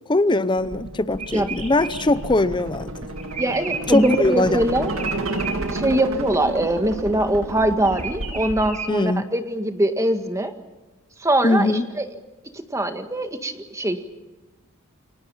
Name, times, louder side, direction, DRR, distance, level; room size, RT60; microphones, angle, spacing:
voice 1, 0.1-2.9 3.9-4.6 8.9-9.3 11.4-11.9, left 2 dB, 20° left, 0.7 m, -21 dB
sound 1, 0.6-8.7, right 2 dB, 70° right, 2.2 m, -31 dB
sound 2, 1.2-4.4 4.9-5.5 7.9-8.9, right 5 dB, 35° right, 4.6 m, -33 dB
voice 2, 3.4-4.9 5.7-10.5 11.2-12.1 12.5-14.1, right 1 dB, 15° right, 1.8 m, -22 dB
29.5 x 23.5 x 5.7 m
head